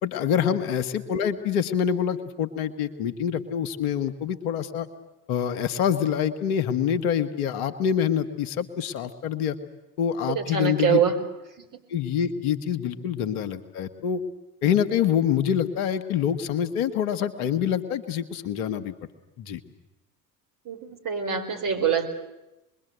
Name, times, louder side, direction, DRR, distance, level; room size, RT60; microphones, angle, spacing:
voice 1, 0.0-4.9 5.3-9.6 10.0-11.0 11.9-14.2 14.6-18.9 19.4-19.6, left 8 dB, 70° left, 9 dB, 1.7 m, -26 dB
voice 2, 10.3-11.1 11.6-11.8 20.6-22.1, right 8 dB, 45° right, 5 dB, 4.6 m, -25 dB
27.0 x 22.0 x 8.1 m, 0.98 s
figure-of-eight pair, 60°, 46 cm